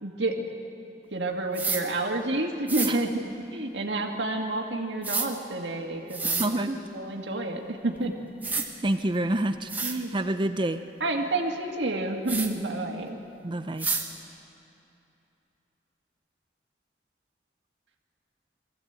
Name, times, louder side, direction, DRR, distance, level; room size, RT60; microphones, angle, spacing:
voice 1, 0.0-0.5 1.1-3.2 3.5-8.1 9.8-10.1 11.0-13.2, right 2 dB, 85° right, 2 dB, 2.0 m, -29 dB
sound 1, 1.5-1.8 2.7-2.9 5.0-5.3 6.1-6.5 7.9-8.0 8.4-8.7 9.3-9.4 9.7-10.0 12.3-12.5 13.8-14.0, right 4 dB, 10° right, 1.3 m, -28 dB
voice 2, 6.4-6.8 8.8-10.8 13.4-13.9, right 1 dB, 25° right, 9 dB, 0.6 m, -28 dB
23.0 x 15.5 x 8.1 m, 2.8 s
head